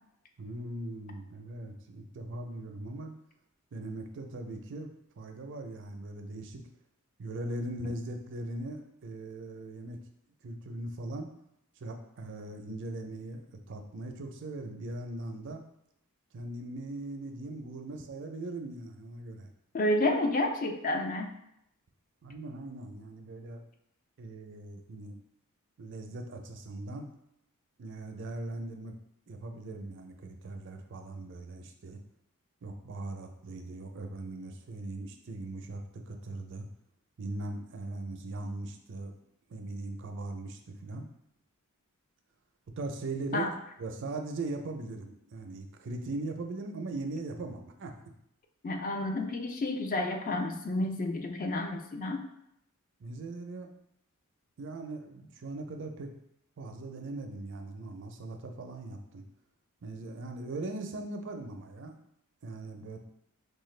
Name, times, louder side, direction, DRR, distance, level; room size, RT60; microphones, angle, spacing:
voice 1, 0.4-3.1 3.7-4.9 5.2-6.6 7.2-10.0 10.4-11.3 11.8-15.6 16.3-19.5 22.2-23.6 24.2-25.2 25.8-27.1 27.8-29.0 29.3-32.0 32.6-36.7 37.2-39.2 39.5-41.1 42.8-43.5 43.8-47.9 53.0-53.7 54.6-56.1 56.6-59.2 59.8-62.0 62.4-63.0, right 2 dB, 55° right, 4 dB, 0.4 m, -40 dB
voice 2, 19.7-21.3 43.3-43.5 48.6-52.2, left 1 dB, 40° left, 5 dB, 0.4 m, -30 dB
4.8 x 2.2 x 3.2 m, 0.78 s
head